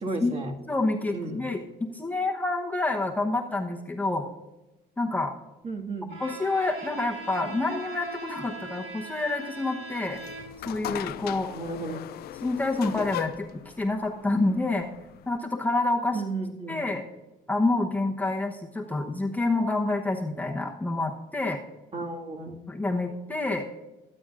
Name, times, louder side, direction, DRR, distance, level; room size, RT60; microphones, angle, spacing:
voice 1, 0.0-0.5 1.1-1.4 5.6-6.1 11.5-12.0 16.1-16.7 21.9-22.6, right 3 dB, 40° right, 1 dB, 1.9 m, -33 dB
voice 2, 0.7-4.2 5.0-5.3 6.2-10.2 10.6-11.5 12.4-14.9 15.3-16.2 16.7-17.0 17.5-21.6 22.7-23.7, left 2 dB, 10° left, 0 dB, 0.9 m, -28 dB
Bowed string instrument, 6.1-10.8, right 3 dB, 70° right, 2.7 m, -40 dB
sound 1, 10.1-15.4, left 13 dB, 70° left, 0.5 m, -38 dB
23.0 x 8.8 x 2.5 m, 1.1 s
cardioid pair, 110°, 17 cm